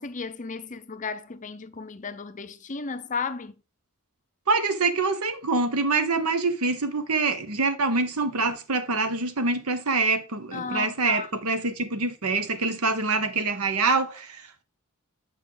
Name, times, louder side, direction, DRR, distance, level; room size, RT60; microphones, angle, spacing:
voice 1, 0.0-3.5 10.5-11.3, left 5 dB, 35° left, 0.6 m, -34 dB
voice 2, 4.5-14.6, right 3 dB, 85° right, 1.1 m, -25 dB
8.4 x 5.5 x 3.8 m
head